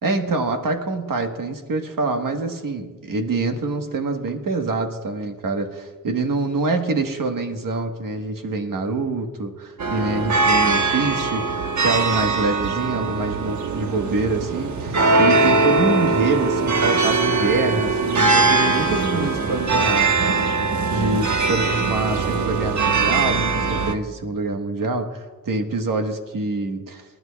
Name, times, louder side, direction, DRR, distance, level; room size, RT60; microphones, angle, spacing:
voice 1, 0.0-11.4 11.8-27.0, right 3 dB, 75° right, 5 dB, 1.3 m, -25 dB
sound 1, 9.8-23.9, right 3 dB, 60° right, 1.1 m, -21 dB
26.5 x 10.5 x 2.3 m, 1.3 s
wide cardioid pair, 140°, 33 cm